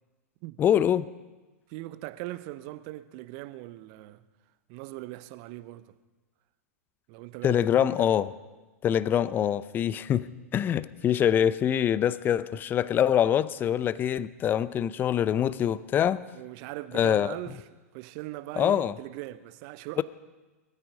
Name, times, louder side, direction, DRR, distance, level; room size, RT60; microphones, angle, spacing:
voice 1, 0.6-1.0 7.4-8.3 8.8-16.2 16.9-17.4 18.6-18.9 20.0-20.1, left 9 dB, 25° left, 0.6 m, -24 dB
voice 2, 1.7-4.2 4.7-5.9 7.1-8.1 16.3-17.6 17.9-20.0, right 17 dB, 45° right, 0.9 m, -40 dB
20.0 x 14.0 x 5.1 m
figure-of-eight pair, 100°, 8 cm